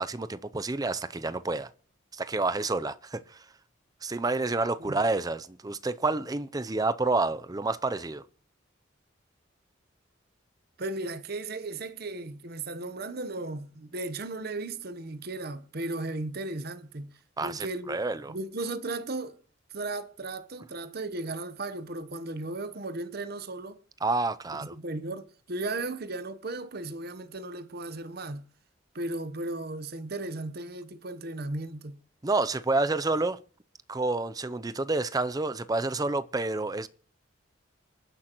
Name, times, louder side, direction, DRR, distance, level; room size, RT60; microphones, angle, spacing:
voice 1, 0.0-1.7 2.1-3.4 4.0-8.2 17.4-18.3 24.0-24.7 32.2-33.4 33.9-36.9, right 3 dB, 20° right, 0.5 m, -29 dB
voice 2, 10.8-17.1 17.4-18.0 18.3-19.4 19.7-23.8 24.7-28.4 28.9-32.0, right 2 dB, 50° right, 1.0 m, -36 dB
27.5 x 10.0 x 3.0 m
head